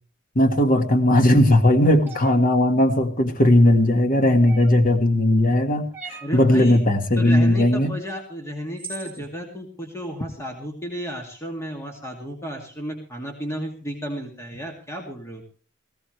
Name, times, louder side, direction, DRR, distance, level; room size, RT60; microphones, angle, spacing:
voice 1, 0.4-7.9, left 1 dB, 40° left, 6 dB, 1.7 m, -18 dB
sound 1, 2.0-2.4 4.4-4.9 5.9-6.4 8.1-8.2 8.8-9.2, right 4 dB, 10° right, 3.2 m, -38 dB
voice 2, 6.2-6.8 7.2-15.4, equal, 15° left, 2 dB, 2.5 m, -33 dB
19.0 x 16.5 x 3.3 m, 0.39 s
head